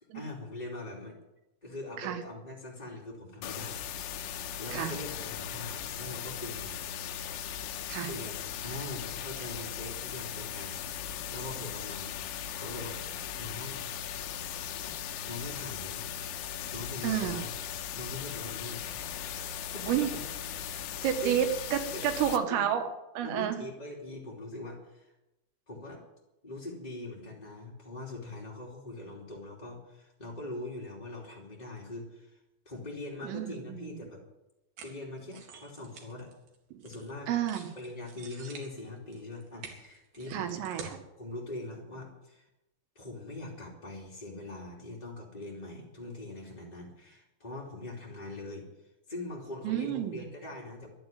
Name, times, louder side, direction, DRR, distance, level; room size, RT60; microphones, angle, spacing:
voice 1, 0.1-1.1 1.6-3.8 4.6-6.8 8.0-12.2 12.5-13.0 13.4-13.8 15.2-16.0 16.7-17.5 17.9-18.8 19.2-20.2 20.6-21.4 21.9-22.6 23.2-25.1 25.7-26.0 26.4-32.4 32.6-34.2 34.8-36.3 36.8-37.3 37.7-40.6 41.2-42.5 42.9-48.7 49.1-50.9, left 2 dB, 15° left, -3 dB, 1.6 m, -42 dB
sound 1, 3.4-22.4, left 9 dB, 85° left, 3.7 m, -38 dB
voice 2, 17.0-17.4 19.9-20.1 21.0-22.8 23.2-23.6 33.2-34.0 36.7-36.8 37.3-37.7 40.3-41.0 49.6-50.2, right 10 dB, 80° right, 6 dB, 4.1 m, -30 dB
sound 2, 34.8-37.1 37.4-41.0, right 5 dB, 55° right, 3.4 m, -48 dB
12.0 x 11.5 x 9.1 m, 0.92 s
omnidirectional pair, 5.8 m